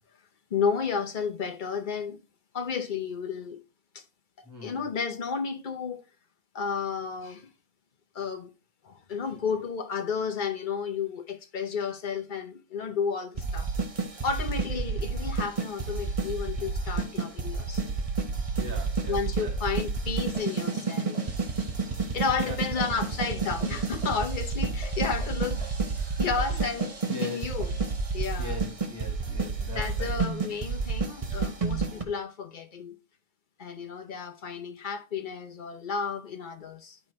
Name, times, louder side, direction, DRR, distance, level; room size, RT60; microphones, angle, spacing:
voice 1, 0.5-2.2 2.5-3.6 3.9-4.0 4.6-6.0 6.5-7.5 8.1-8.5 8.8-13.7 14.2-17.9 19.1-21.2 22.1-25.6 26.2-26.9 27.2-27.7 28.1-28.6 29.7-32.9 33.6-37.0, left 5 dB, 45° left, 0.8 m, -32 dB
voice 2, 4.4-4.8 18.6-19.6 22.4-22.6 25.5-25.7 25.9-26.2 27.1-27.5 28.4-30.2, left 2 dB, 15° left, 1.6 m, -40 dB
sound 1, 13.4-32.0, right 4 dB, 30° right, 0.9 m, -30 dB
11.5 x 4.5 x 3.2 m
omnidirectional pair, 1.5 m